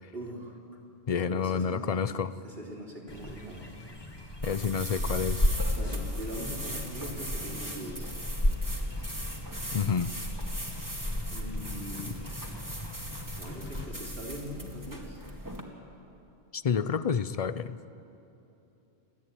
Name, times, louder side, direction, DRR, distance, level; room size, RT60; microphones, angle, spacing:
voice 1, 0.1-0.6 1.3-2.0 2.4-3.7 5.7-8.1 11.3-12.2 13.4-15.2, equal, 55° right, -2 dB, 3.5 m, -41 dB
voice 2, 1.1-2.3 4.4-5.4 9.7-10.1 12.1-12.2 16.5-17.8, left 6 dB, 45° left, 14 dB, 0.5 m, -29 dB
sound 1, 3.1-13.9, left 1 dB, 20° left, 1.6 m, -34 dB
sound 2, 4.4-15.6, right 1 dB, 15° right, 2.2 m, -40 dB
30.0 x 13.0 x 9.2 m, 2.9 s
omnidirectional pair, 1.1 m